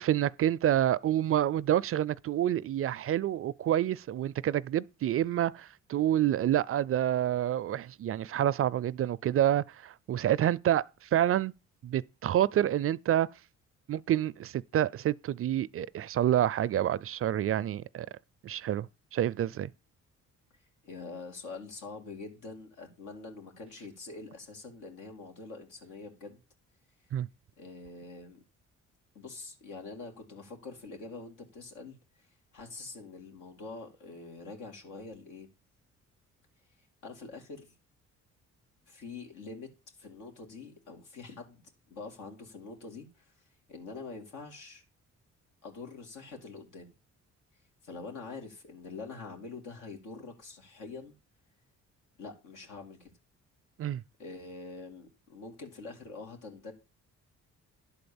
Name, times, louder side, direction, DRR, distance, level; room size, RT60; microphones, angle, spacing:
voice 1, 0.0-10.8 11.1-11.5 11.8-13.3 13.9-18.1 18.4-18.9 19.1-19.7 27.1-27.3 53.8-54.0, right 11 dB, 50° right, 0.4 m, -28 dB
voice 2, 20.8-26.4 27.6-28.4 29.1-32.0 32.5-35.5 37.0-37.7 38.9-39.7 40.0-43.3 43.7-44.8 45.6-46.9 47.8-51.2 52.2-53.1 54.2-56.7, left 3 dB, 85° left, 2.6 m, -45 dB
11.0 x 4.3 x 7.1 m
cardioid pair, 90°, 30 cm